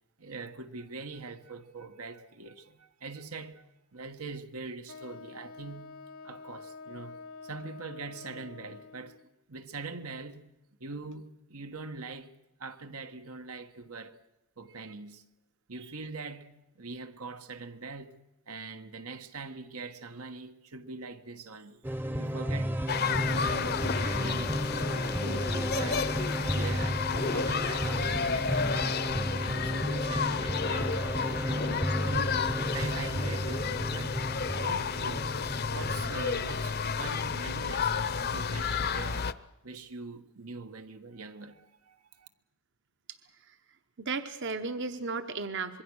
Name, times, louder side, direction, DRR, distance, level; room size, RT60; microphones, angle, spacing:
voice 1, 0.2-6.0 6.2-9.2 9.5-10.5 10.8-12.3 12.6-14.2 14.6-15.2 15.7-21.8 22.2-26.1 26.5-29.0 29.4-31.4 32.0-34.2 34.5-35.4 35.7-39.3 39.6-42.3, right 4 dB, 85° right, 1.5 m, -43 dB
Wind instrument woodwind instrument, 4.9-9.3, left 4 dB, 75° left, 1.0 m, -47 dB
sound 1, 21.8-36.3, equal, 10° right, 0.7 m, -33 dB
sound 2, 22.9-39.3, left 6 dB, 45° left, 0.7 m, -32 dB
voice 2, 44.0-45.8, right 4 dB, 55° right, 1.0 m, -35 dB
26.0 x 22.0 x 6.4 m
head